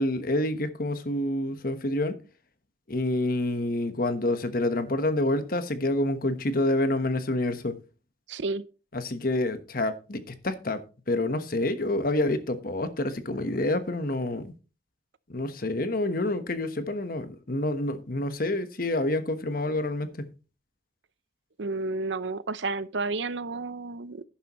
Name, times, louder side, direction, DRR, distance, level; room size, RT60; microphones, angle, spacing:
voice 1, 0.0-2.2 2.9-7.8 8.9-14.5 15.3-20.3, left 1 dB, 50° left, 1.2 m, -28 dB
voice 2, 8.3-8.6 21.6-24.2, right 3 dB, 85° right, 0.7 m, -31 dB
11.5 x 10.0 x 3.1 m
head